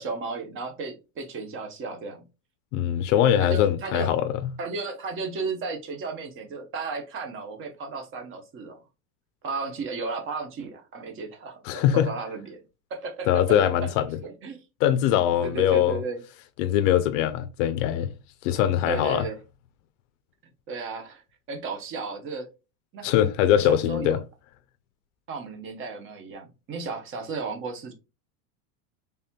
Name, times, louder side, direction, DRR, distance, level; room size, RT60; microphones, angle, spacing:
voice 1, 0.0-2.2 3.4-4.1 4.6-8.8 9.4-12.6 12.9-13.6 13.8-13.9 14.2-14.6 15.4-16.2 18.9-19.4 20.7-21.2 21.5-22.5 22.9-23.1 23.5-24.2 25.3-27.9, right 4 dB, 30° right, 0.8 m, -34 dB
voice 2, 2.7-4.3 11.6-12.1 13.3-14.2 14.8-16.0 16.6-18.1 18.4-19.3 23.0-24.2, left 10 dB, 60° left, 0.5 m, -22 dB
4.1 x 3.5 x 2.2 m
supercardioid pair, 145°, 44 cm